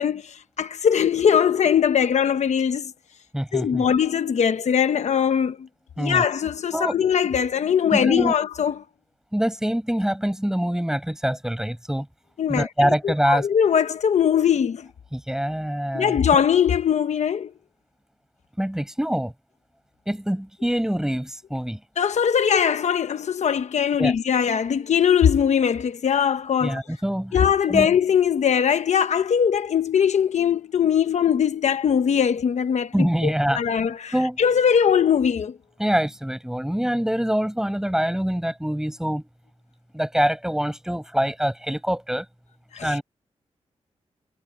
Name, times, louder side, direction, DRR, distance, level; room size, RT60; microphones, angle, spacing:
voice 1, 0.0-2.9 3.5-5.6 6.0-8.8 12.4-14.9 15.9-17.5 22.0-26.8 27.3-32.9 33.5-34.1 34.4-35.5 42.7-43.0, left 8 dB, 80° left, 1.0 m, -21 dB
voice 2, 3.3-3.9 6.0-6.2 6.7-7.0 7.9-8.4 9.3-12.1 12.5-13.5 15.1-16.4 18.6-19.3 20.1-21.8 24.0-24.1 26.6-27.4 27.7-27.9 32.9-33.8 34.1-34.4 35.8-39.3 39.9-42.3 42.8-43.0, equal, 5° right, 7.1 m, -25 dB
wide cardioid pair, 85°, 12 cm